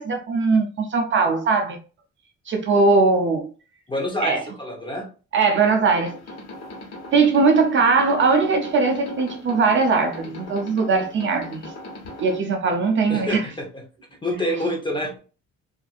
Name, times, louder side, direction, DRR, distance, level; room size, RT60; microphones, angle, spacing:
voice 1, 0.0-1.8 2.5-3.5 4.2-4.4 5.3-6.2 7.1-11.7 12.2-13.5, right 4 dB, 40° right, 0.4 m, -20 dB
voice 2, 3.9-5.1 13.1-13.7 14.2-15.2, left 1 dB, 15° left, 0.7 m, -27 dB
sound 1, 5.9-12.4, left 1 dB, 60° left, 1.1 m, -39 dB
2.6 x 2.4 x 2.3 m
cardioid pair, 150°, 30 cm